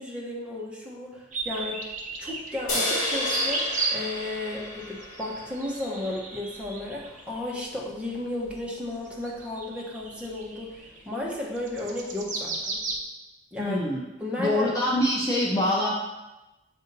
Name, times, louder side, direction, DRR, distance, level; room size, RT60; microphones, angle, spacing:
voice 1, 0.0-1.9 2.2-12.8 13.5-13.9 14.2-14.7, left 1 dB, 5° right, -3 dB, 0.9 m, -34 dB
sound 1, 1.3-4.2 4.6-13.0, right 3 dB, 45° right, 0.8 m, -35 dB
sound 2, 2.7-6.2, left 1 dB, 50° left, 1.7 m, -31 dB
voice 2, 13.6-14.0 14.4-15.9, left 1 dB, 20° left, -4 dB, 0.7 m, -24 dB
6.8 x 2.7 x 5.3 m, 1.0 s
head